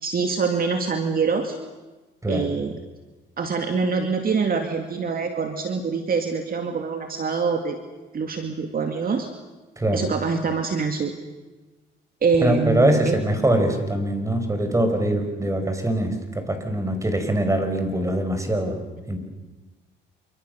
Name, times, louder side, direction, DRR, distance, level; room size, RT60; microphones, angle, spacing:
voice 1, 0.0-1.5 2.3-2.8 3.4-7.8 8.1-9.3 9.9-11.1 12.2-13.2, right 5 dB, 45° right, 5 dB, 2.2 m, -25 dB
voice 2, 9.8-10.1 12.4-18.8 19.1-19.2, right 1 dB, 15° right, 6 dB, 5.5 m, -23 dB
27.5 x 25.0 x 6.8 m, 1.2 s
cardioid pair, 90°, 20 cm